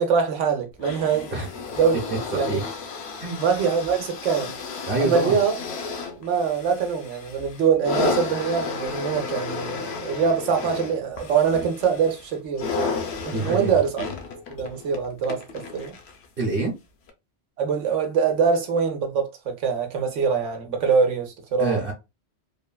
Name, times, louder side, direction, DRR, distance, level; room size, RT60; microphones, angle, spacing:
voice 1, 0.0-1.3 1.8-2.0 2.3-2.6 3.4-4.5 5.0-5.5 6.2-13.0 13.2-14.0 14.5-15.9 17.6-21.8, right 6 dB, 85° right, 1.1 m, -23 dB
sound 1, 0.8-16.3 17.1-17.2, left 5 dB, 65° left, 0.8 m, -33 dB
voice 2, 4.9-5.4 13.3-13.8 16.4-16.7 21.6-21.9, right 3 dB, 55° right, 1.0 m, -25 dB
3.2 x 2.1 x 2.2 m
omnidirectional pair, 1.2 m